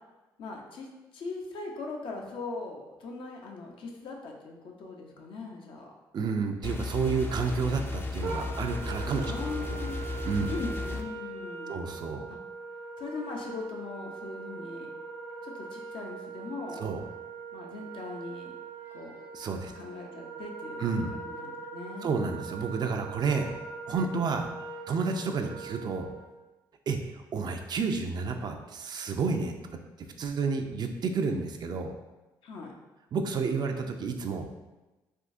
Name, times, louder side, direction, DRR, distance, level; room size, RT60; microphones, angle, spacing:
voice 1, 0.4-5.8 9.2-10.0 10.5-11.8 12.3-12.4 13.0-14.9 15.4-16.9 17.5-18.5 18.9-19.1 19.7-20.8 21.2-22.1 32.4-32.8, left 3 dB, 65° left, 1 dB, 0.6 m, -40 dB
voice 2, 6.1-9.3 9.7-9.8 10.3-10.5 11.7-12.3 16.8-17.0 19.3-19.7 20.8-21.1 22.0-23.5 23.9-24.5 24.9-26.1 26.9-31.9 33.1-34.5, right 5 dB, 50° right, 5 dB, 0.4 m, -30 dB
sound 1, 6.6-11.0, left 3 dB, 25° left, 0.4 m, -35 dB
Wind instrument woodwind instrument, 8.2-26.3, right 4 dB, 75° right, 0.8 m, -41 dB
3.5 x 2.6 x 2.5 m, 1.1 s
supercardioid pair, 65°, 9 cm